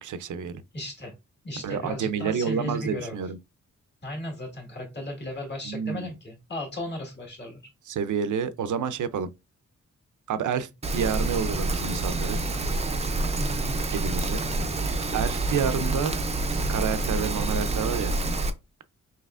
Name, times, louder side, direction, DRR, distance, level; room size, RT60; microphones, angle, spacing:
voice 1, 0.0-0.5 1.6-3.4 5.6-6.1 7.9-9.3 10.3-12.4 13.9-14.4 14.9-16.1 16.5-18.1, right 7 dB, 85° right, 0.5 m, -29 dB
voice 2, 0.7-1.1 1.4-3.2 4.0-7.6 13.4-13.8 15.7-16.0, left 1 dB, 35° left, 1.7 m, -35 dB
Rain, 10.8-18.5, right 2 dB, 20° right, 0.5 m, -27 dB
5.6 x 3.0 x 2.4 m
wide cardioid pair, 175°, 30 cm